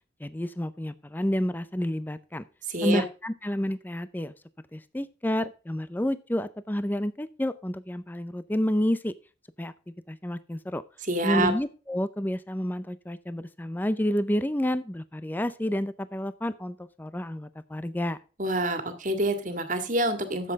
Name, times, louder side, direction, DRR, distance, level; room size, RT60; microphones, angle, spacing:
voice 1, 0.2-2.5 2.8-4.3 4.7-9.1 9.6-9.7 10.1-10.8 11.2-18.2, left 1 dB, 10° left, 14 dB, 0.5 m, -29 dB
voice 2, 2.7-3.0 11.1-11.5 18.4-20.5, right 1 dB, 45° right, 8 dB, 1.9 m, -27 dB
12.0 x 7.7 x 3.5 m, 0.35 s
head